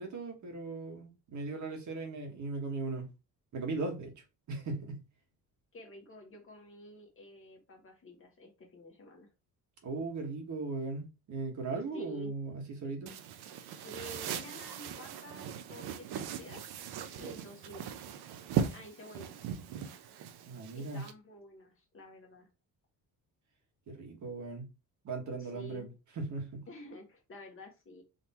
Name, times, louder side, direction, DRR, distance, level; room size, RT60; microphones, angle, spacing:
voice 1, 0.0-3.1 3.5-4.1 4.5-5.0 9.8-13.1 20.5-21.0 23.9-24.7 25.0-25.9 26.2-26.6, right 3 dB, 50° right, 1.4 m, -38 dB
voice 2, 5.7-9.3 11.9-12.3 13.8-16.6 17.2-17.9 18.7-19.4 20.7-22.5 25.4-25.9 26.7-28.0, equal, 35° left, 1.3 m, -50 dB
sound 1, 13.1-21.1, right 8 dB, 85° right, 0.7 m, -39 dB
3.9 x 3.1 x 4.2 m
cardioid pair, 175°, 38 cm